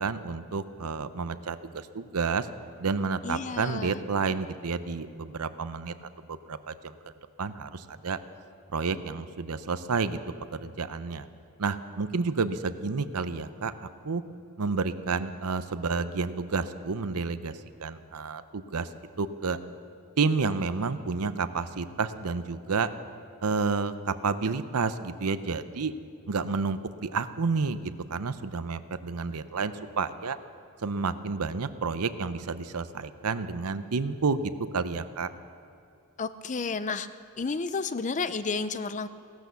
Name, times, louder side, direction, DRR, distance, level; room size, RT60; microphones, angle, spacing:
voice 1, 0.0-2.5 2.8-5.9 6.3-7.0 7.4-8.2 8.7-10.2 10.5-11.3 11.6-14.2 14.6-17.5 17.8-18.9 19.2-19.6 20.2-22.9 23.4-25.9 26.3-30.4 30.8-35.3, right 4 dB, 90° right, 12 dB, 0.7 m, -30 dB
voice 2, 3.2-4.0 36.2-37.1 37.4-39.1, left 4 dB, 35° left, 13 dB, 0.5 m, -31 dB
17.0 x 12.5 x 7.0 m, 2.5 s
head